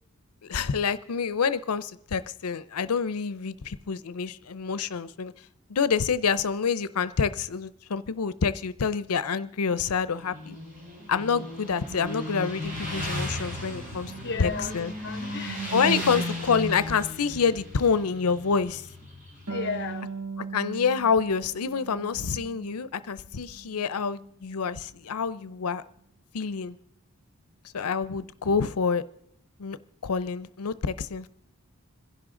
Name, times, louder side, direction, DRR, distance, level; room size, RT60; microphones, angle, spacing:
voice 1, 0.4-5.3 5.7-10.6 11.1-14.1 14.4-14.9 15.7-18.9 20.5-25.8 26.3-26.8 27.7-29.0 29.6-29.8 30.0-31.3, left 5 dB, 90° left, 16 dB, 0.6 m, -27 dB
Motorcycle, 10.0-19.8, equal, 35° right, 6.9 m, -35 dB
voice 2, 14.2-15.9 19.5-20.1, left 4 dB, 50° left, 12 dB, 0.9 m, -34 dB
Harp, 19.5-22.9 23.2-24.3, right 4 dB, 85° right, 1.8 m, -39 dB
26.0 x 11.0 x 3.8 m, 0.75 s
head